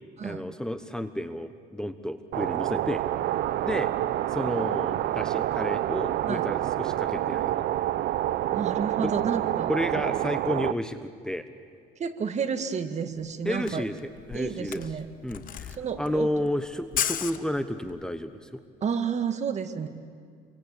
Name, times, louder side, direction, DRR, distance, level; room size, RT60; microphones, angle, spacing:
voice 1, 0.2-3.0 3.6-3.9 4.3-7.6 9.0-9.2 9.7-11.5 13.4-13.9 14.3-14.8 15.2-18.6, left 1 dB, 5° left, 9 dB, 1.2 m, -31 dB
sound 1, 2.3-10.7, right 13 dB, 70° right, 0.8 m, -28 dB
voice 2, 8.5-9.7 12.0-13.8 14.3-15.1 15.8-16.3 18.8-19.9, right 6 dB, 40° right, 8 dB, 1.9 m, -30 dB
Camera, 13.2-13.3 13.5-18.0, left 10 dB, 55° left, 1.2 m, -34 dB
29.0 x 24.0 x 8.5 m, 2.2 s
cardioid pair, 110°, 17 cm